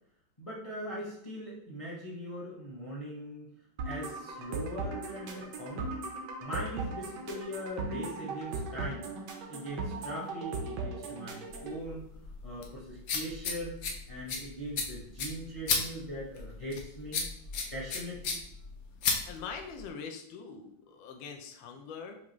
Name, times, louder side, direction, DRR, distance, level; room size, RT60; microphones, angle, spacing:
voice 1, 0.4-3.5 3.8-5.9 6.4-9.0 9.5-12.1 12.4-13.8 14.1-17.3 17.7-18.4, equal, 25° left, -6 dB, 0.7 m, -40 dB
sound 1, 3.8-11.8, right 3 dB, 70° right, 1.2 m, -38 dB
sound 2, 11.5-19.9, left 4 dB, 65° left, 0.9 m, -35 dB
voice 2, 19.3-22.2, left 5 dB, 80° left, 3 dB, 1.4 m, -43 dB
5.8 x 2.4 x 3.0 m, 0.74 s
omnidirectional pair, 2.2 m